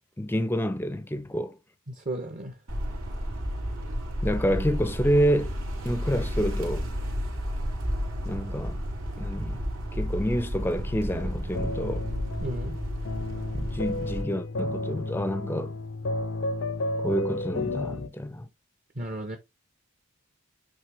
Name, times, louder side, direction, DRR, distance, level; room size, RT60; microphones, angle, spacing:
voice 1, 0.2-1.6 4.2-5.6 5.8-6.9 8.2-8.8 9.2-9.6 9.9-12.1 13.5-15.7 17.0-18.5, equal, 10° left, 0.6 m, -28 dB
voice 2, 1.9-2.6 12.4-12.8 18.9-19.4, right 1 dB, 40° right, 1.0 m, -34 dB
sound 1, 2.7-14.2, equal, 80° right, 3.0 m, -32 dB
sound 2, 11.2-18.1, left 2 dB, 65° left, 0.6 m, -32 dB
8.9 x 3.5 x 3.4 m
head